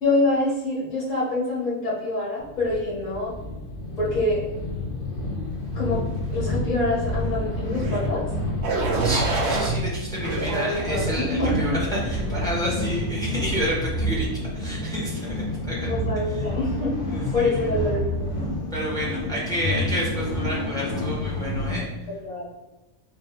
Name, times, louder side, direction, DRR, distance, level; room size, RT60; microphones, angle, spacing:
voice 1, 0.0-3.3 4.0-4.4 5.8-6.0 6.3-8.2 10.5-11.7 15.9-16.9 17.3-18.3 19.2-19.3 22.2-22.5, left 2 dB, 60° left, -6 dB, 1.7 m, -25 dB
sound 1, 2.4-21.9, left 1 dB, 40° left, 1.0 m, -29 dB
sound 2, 7.7-8.1 8.6-9.7 10.2-11.3 11.9-12.2, right 3 dB, 60° right, 0.7 m, -28 dB
voice 2, 9.0-14.3 14.5-15.9 16.3-16.5 17.1-17.7 18.7-21.9, equal, 5° left, -5 dB, 0.7 m, -30 dB
3.6 x 2.7 x 3.4 m, 1.0 s
omnidirectional pair, 1.6 m